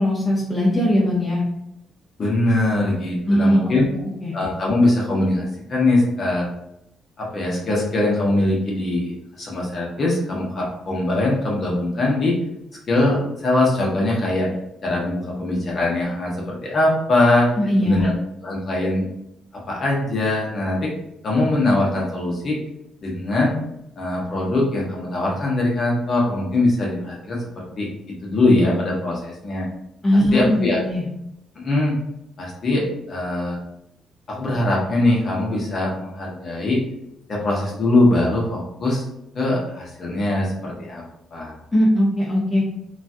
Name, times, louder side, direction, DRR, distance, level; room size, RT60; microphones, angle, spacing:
voice 1, 0.0-1.4 3.3-3.7 4.2-4.3 17.6-18.1 30.0-31.1 41.7-42.6, equal, 20° left, -5 dB, 0.8 m, -19 dB
voice 2, 2.2-3.8 4.3-6.5 7.2-9.1 9.4-12.4 12.9-14.5 14.8-17.5 17.8-18.1 18.4-19.1 19.7-20.9 21.2-22.6 23.0-23.6 24.0-29.7 30.3-30.8 31.5-32.0 32.4-33.6 34.3-36.8 37.3-39.0 39.3-41.0 41.3-41.5, left 2 dB, 45° left, -3 dB, 1.0 m, -21 dB
3.0 x 2.4 x 2.6 m, 0.79 s
cardioid pair, 90°, 0 cm